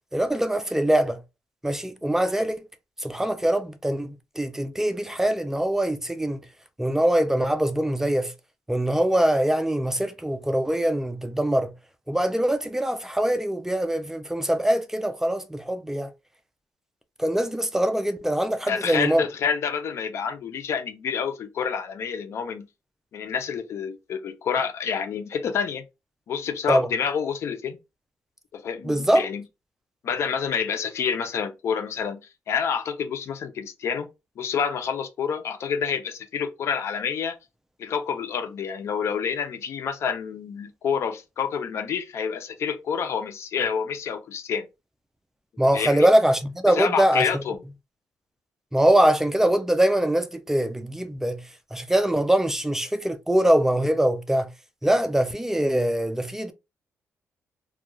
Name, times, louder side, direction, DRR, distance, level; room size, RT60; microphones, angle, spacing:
voice 1, 0.1-1.2 1.6-2.6 3.0-6.4 6.8-8.3 8.7-11.7 12.1-16.1 17.2-19.2 26.7-26.9 28.8-29.3 45.6-47.3 48.7-51.4 51.7-54.5 54.8-56.5, right 1 dB, 10° right, 0.4 m, -23 dB
voice 2, 18.6-22.7 23.1-25.8 26.3-27.8 28.5-29.4 30.0-32.2 32.5-34.1 34.4-37.4 37.8-44.7 45.7-46.1 46.7-47.6, left 7 dB, 65° left, 0.4 m, -28 dB
2.3 x 2.2 x 2.9 m
cardioid pair, 85°, 5 cm